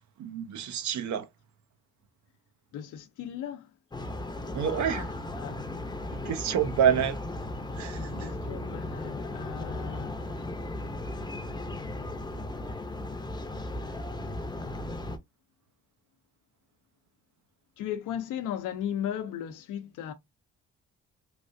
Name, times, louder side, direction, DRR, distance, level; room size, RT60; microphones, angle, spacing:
voice 1, 0.2-1.3 4.5-5.1 6.2-7.2 7.8-8.3, right 8 dB, 70° right, 0.7 m, -27 dB
voice 2, 2.7-3.7 4.9-5.1 5.4-5.7 7.9-10.2 17.8-20.1, left 9 dB, 85° left, 0.7 m, -36 dB
sound 1, 3.9-15.2, left 1 dB, 15° left, 0.6 m, -36 dB
3.2 x 2.4 x 2.6 m
cardioid pair, 90°, 30 cm